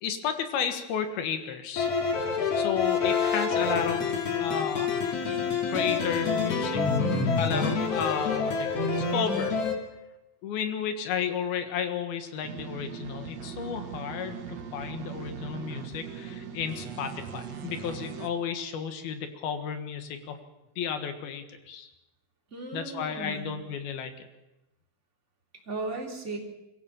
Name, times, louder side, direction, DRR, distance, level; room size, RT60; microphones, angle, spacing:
voice 1, 0.0-1.9 2.6-5.0 5.7-6.8 7.4-9.6 10.4-20.4 20.8-21.9 22.7-24.3, left 7 dB, 80° left, 7 dB, 3.5 m, -33 dB
sound 1, 1.8-9.8, left 5 dB, 45° left, 3.1 m, -27 dB
sound 2, 12.4-18.3, right 7 dB, 55° right, 2.2 m, -40 dB
voice 2, 22.5-23.5 25.7-26.4, right 2 dB, 20° right, -1 dB, 3.5 m, -36 dB
23.5 x 16.0 x 7.1 m, 0.97 s
omnidirectional pair, 4.3 m